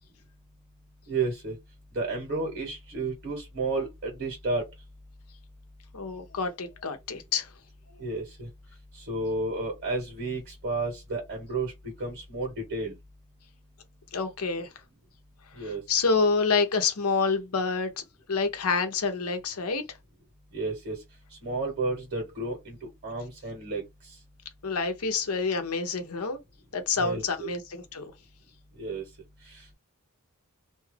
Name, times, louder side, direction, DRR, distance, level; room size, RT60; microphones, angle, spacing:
voice 1, 1.1-1.6 1.9-4.7 8.0-8.5 8.9-11.7 12.0-12.9 15.5-15.8 20.5-21.0 21.4-22.8 23.0-23.8 27.0-27.5 28.8-29.0 29.5-29.8, right 3 dB, 45° right, 1.4 m, -32 dB
voice 2, 5.9-7.5 14.1-14.7 15.9-18.0 18.3-20.0 24.6-26.4 26.7-28.1, left 4 dB, 80° left, 0.8 m, -27 dB
2.8 x 2.3 x 3.3 m
head